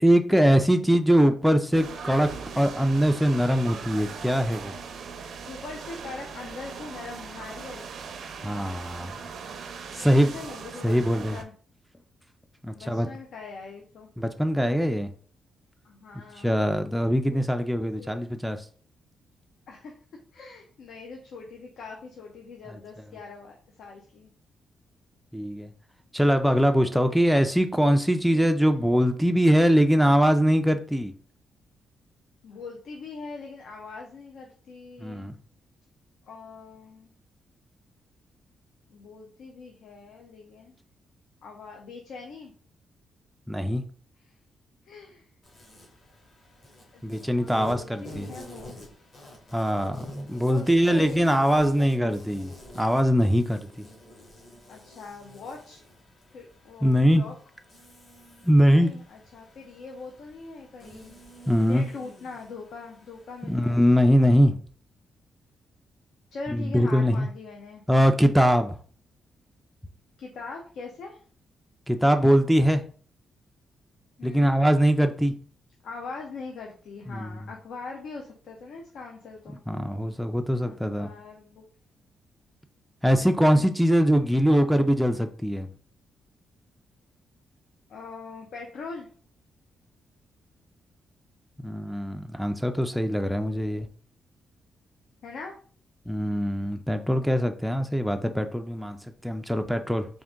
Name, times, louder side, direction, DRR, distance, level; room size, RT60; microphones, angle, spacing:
voice 1, 0.0-2.3 2.6-4.7 8.4-9.1 10.0-10.3 10.8-11.4 12.6-13.1 14.2-15.1 16.4-18.6 22.7-22.8 25.3-25.7 26.1-31.1 35.0-35.3 43.5-43.8 47.0-48.3 49.5-53.7 56.8-57.2 58.4-58.9 61.5-61.9 63.4-64.6 66.5-67.3 67.9-68.8 71.9-72.8 74.2-75.3 77.1-77.3 79.7-81.1 83.0-85.7 91.6-93.9 96.1-99.0 99.2-100.1, equal, ahead, 0.3 m, -22 dB
sound 1, 1.7-11.4, right 5 dB, 60° right, 0.5 m, -40 dB
voice 2, 5.5-7.9 10.0-11.5 12.7-14.1 15.8-16.6 17.3-17.4 17.7-18.3 19.7-19.9 20.3-24.3 28.3-28.8 32.4-35.3 36.3-37.1 38.9-40.7 41.4-42.5 44.2-44.3 44.8-45.3 46.9-48.7 49.9-52.3 54.7-55.8 56.3-57.3 58.7-61.1 61.6-63.8 66.3-67.8 70.2-71.2 74.2-74.6 75.8-79.6 80.6-81.6 87.9-89.1 95.2-95.5, left 4 dB, 70° left, 0.6 m, -42 dB
Insect, 45.4-64.4, left 1 dB, 40° left, 1.3 m, -49 dB
3.7 x 2.5 x 3.6 m
cardioid pair, 145°, 0 cm